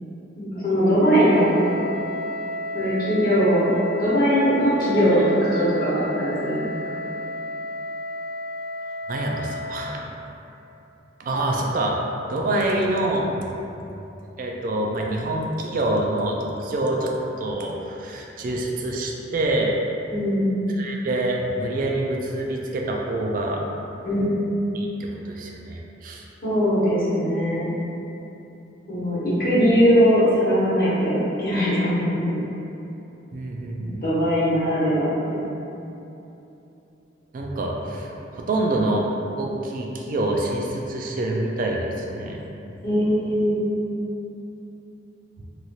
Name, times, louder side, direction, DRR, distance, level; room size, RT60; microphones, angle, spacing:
voice 1, 0.4-1.6 2.7-3.6 4.0-6.7 20.1-20.5 24.0-24.5 26.4-27.7 28.9-32.4 34.0-35.6 42.8-43.6, equal, 55° left, -10 dB, 0.9 m, -20 dB
Wind instrument woodwind instrument, 1.0-9.9, left 1 dB, 85° left, 0.6 m, -32 dB
voice 2, 9.1-10.1 11.2-12.0 12.3-13.5 14.4-17.1 17.4-19.7 20.7-23.6 24.7-26.3 33.3-34.1 37.3-42.4, right 1 dB, 50° right, -1 dB, 0.3 m, -26 dB
3.0 x 2.4 x 2.7 m, 2.9 s
head